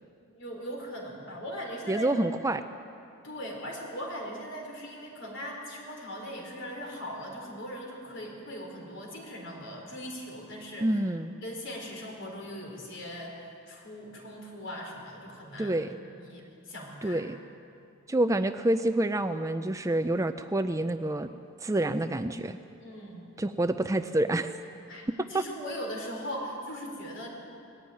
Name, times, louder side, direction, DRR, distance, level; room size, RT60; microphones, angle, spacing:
voice 1, 0.3-2.1 3.2-10.9 11.3-16.4 16.7-17.3 22.8-23.2 24.9-27.3, equal, 55° left, 0 dB, 4.1 m, -40 dB
voice 2, 1.9-2.6 10.8-11.3 15.6-16.0 17.0-17.4 18.1-21.3 21.6-22.6 23.4-24.5 25.3-25.4, right 1 dB, 15° right, 9 dB, 0.4 m, -27 dB
20.0 x 15.0 x 9.1 m, 2.6 s
head